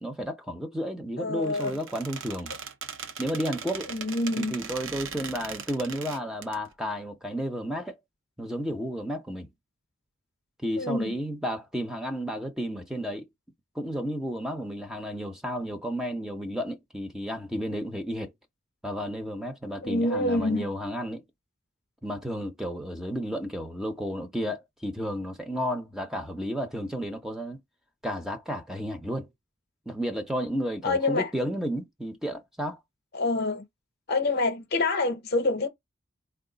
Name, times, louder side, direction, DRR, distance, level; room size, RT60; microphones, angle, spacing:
voice 1, 0.0-2.5 3.2-3.9 4.4-7.9 8.4-9.5 10.6-13.3 13.8-18.3 18.8-21.2 22.0-27.6 28.0-29.3 29.9-32.8, equal, ahead, 0.5 m, -32 dB
voice 2, 1.2-1.8 3.8-4.6 10.8-11.2 19.8-20.7 30.8-31.3 33.1-33.7 34.1-35.7, left 2 dB, 50° left, 0.6 m, -26 dB
Squeak, 1.4-6.6, right 6 dB, 65° right, 0.6 m, -39 dB
4.5 x 2.3 x 3.8 m
head